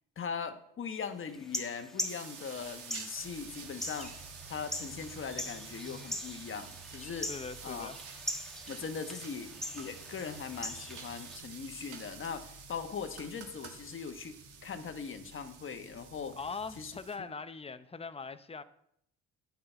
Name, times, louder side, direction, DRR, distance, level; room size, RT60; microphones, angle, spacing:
voice 1, 0.2-4.1 4.5-7.3 7.6-7.9 8.7-16.4 16.8-16.9, left 6 dB, 40° left, 1.1 m, -40 dB
sound 1, 1.3-11.4, left 1 dB, ahead, 1.4 m, -42 dB
sound 2, 2.1-17.2, right 7 dB, 85° right, 1.5 m, -50 dB
sound 3, 3.1-17.0, right 2 dB, 65° right, 3.0 m, -55 dB
voice 2, 7.2-8.0 16.3-18.6, left 4 dB, 20° left, 0.6 m, -41 dB
9.2 x 5.8 x 7.9 m
cardioid pair, 90°, 30 cm